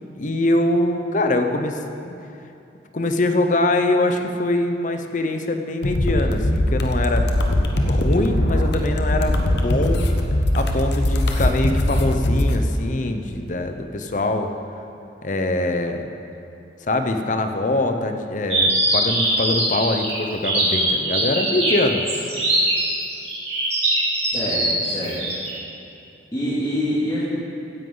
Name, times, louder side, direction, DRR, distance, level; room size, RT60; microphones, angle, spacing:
voice 1, 0.1-2.1 2.9-7.3 7.9-10.1 10.5-14.5 15.2-16.1 16.8-22.0 22.3-22.5, left 2 dB, 45° left, 6 dB, 0.8 m, -23 dB
sound 1, 5.8-12.6, left 1 dB, 70° left, 1.0 m, -21 dB
sound 2, 18.5-25.5, right 2 dB, 35° right, 2.9 m, -22 dB
voice 2, 24.3-25.2 26.3-27.2, equal, 20° left, -12 dB, 2.2 m, -25 dB
16.0 x 10.5 x 3.9 m, 2.7 s
head